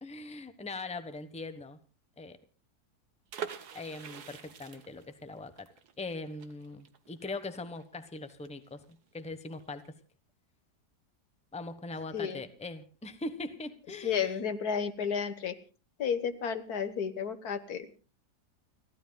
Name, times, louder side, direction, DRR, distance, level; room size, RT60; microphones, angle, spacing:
voice 1, 0.0-1.8 2.2-2.4 3.7-5.7 6.0-8.8 9.1-9.8 11.5-14.3, left 2 dB, 5° left, 10 dB, 1.0 m, -41 dB
sound 1, 3.3-8.9 9.2-9.3 9.6-9.9, right 8 dB, 75° right, 1.8 m, -45 dB
voice 2, 14.0-15.6 16.0-17.9, left 7 dB, 70° left, 11 dB, 1.8 m, -32 dB
30.0 x 12.5 x 2.3 m, 0.35 s
omnidirectional pair, 1.7 m